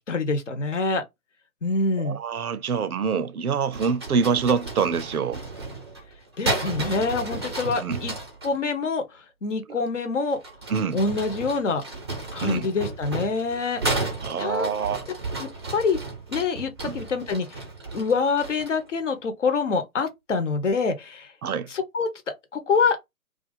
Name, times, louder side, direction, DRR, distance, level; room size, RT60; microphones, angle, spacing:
voice 1, 0.1-1.0 1.6-2.2 6.4-8.1 8.4-9.0 9.4-10.4 10.9-11.8 12.3-13.8 14.4-14.7 15.4-16.0 16.3-17.6 17.9-21.3 21.7-22.1 22.5-23.0, left 4 dB, 55° left, 1.0 m, -25 dB
voice 2, 2.0-5.4 7.8-8.0 10.7-11.0 12.4-12.7 14.2-15.0 16.8-17.0 21.4-21.7, right 6 dB, 75° right, 0.6 m, -25 dB
sound 1, 3.7-8.5 10.3-18.9, right 2 dB, 20° right, 0.5 m, -33 dB
2.5 x 2.3 x 4.1 m
figure-of-eight pair, 135°, 44 cm